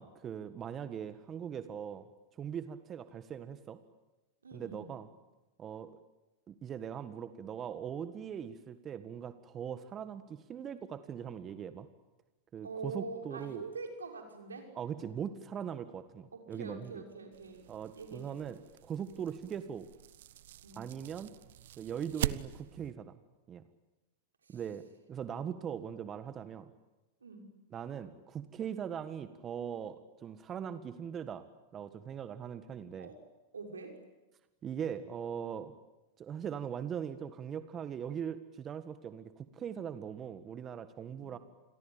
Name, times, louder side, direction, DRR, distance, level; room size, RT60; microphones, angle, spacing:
voice 1, 0.0-2.1 2.4-3.8 4.5-5.1 5.6-5.9 6.5-11.9 12.5-13.7 14.7-17.0 17.7-19.9 20.7-21.3 21.8-23.1 23.5-23.6 24.5-26.7 27.7-31.4 31.7-33.1 34.6-35.7 36.2-41.4, right 8 dB, 30° right, 11 dB, 1.7 m, -40 dB
voice 2, 4.4-4.9 12.6-14.7 16.3-17.6 18.0-18.4 20.6-20.8 24.5-24.6 27.2-27.5 33.0-33.2 33.5-34.0 41.2-41.3, right 4 dB, 90° right, 4 dB, 5.9 m, -44 dB
sound 1, 17.3-22.9, right 12 dB, 70° right, 1.1 m, -42 dB
28.5 x 22.5 x 9.0 m, 1.1 s
hypercardioid pair, 100°, 0 cm